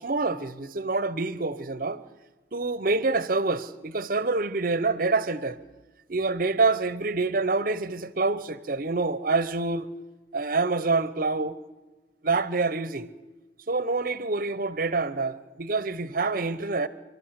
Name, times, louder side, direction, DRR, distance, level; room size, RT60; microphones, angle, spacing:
voice 1, 0.0-2.0 2.5-5.6 6.1-9.9 10.3-11.6 12.2-13.1 13.7-16.9, right 3 dB, 50° right, 0.9 m, -26 dB
30.0 x 12.5 x 8.1 m
head